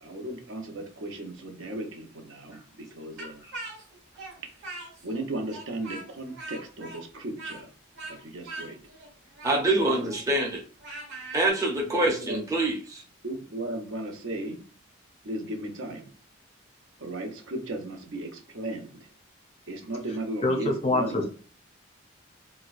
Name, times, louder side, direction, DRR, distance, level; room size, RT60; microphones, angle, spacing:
voice 1, 0.0-2.6 2.9-3.4 4.4-4.5 5.0-7.7 8.1-8.8 9.4-10.1 11.9-12.5 13.2-14.6 15.2-16.1 17.0-19.1 19.7-21.3, right 1 dB, 70° right, 3 dB, 0.7 m, -36 dB
Speech, 3.2-5.2 5.5-11.5, right 2 dB, 55° right, 1.7 m, -41 dB
voice 2, 9.4-10.6 11.3-13.0, right 2 dB, 15° right, 0 dB, 0.6 m, -25 dB
voice 3, 20.4-21.3, left 2 dB, 30° left, 4 dB, 0.4 m, -25 dB
4.3 x 2.2 x 2.4 m, 0.38 s
head